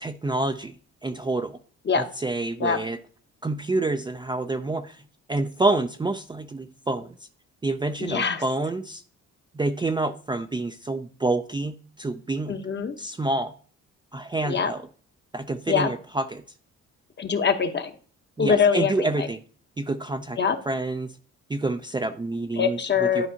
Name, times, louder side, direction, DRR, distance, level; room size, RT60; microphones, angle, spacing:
voice 1, 0.0-1.6 1.9-3.0 3.4-5.0 5.3-7.1 7.6-9.0 9.5-12.5 13.0-13.5 14.1-14.9 15.3-16.4 18.4-19.4 19.8-20.4 20.7-21.1 21.5-23.3, right 2 dB, 15° right, 8 dB, 0.4 m, -28 dB
voice 2, 8.0-8.4 12.5-13.0 14.5-14.7 15.7-15.9 17.2-17.9 18.4-19.3 20.4-20.6 22.6-23.3, left 6 dB, 35° left, 8 dB, 0.9 m, -23 dB
11.0 x 4.7 x 2.8 m, 0.43 s
cardioid pair, 90°, 30 cm